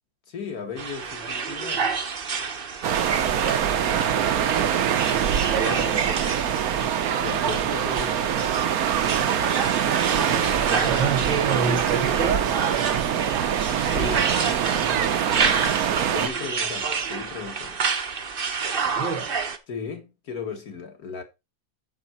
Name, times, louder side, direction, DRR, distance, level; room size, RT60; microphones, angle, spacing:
voice 1, 0.3-1.9 7.1-8.2 13.9-14.3 16.1-17.8 19.7-21.2, left 6 dB, 55° left, 2.0 m, -35 dB
sound 1, 0.8-19.6, right 5 dB, 40° right, 0.9 m, -29 dB
sound 2, 2.8-16.3, right 9 dB, 60° right, 1.2 m, -24 dB
voice 2, 3.4-3.7 5.5-6.2 10.3-12.5 15.3-15.5 18.8-19.3, right 5 dB, 80° right, 2.4 m, -28 dB
9.0 x 6.4 x 4.3 m
omnidirectional pair, 2.0 m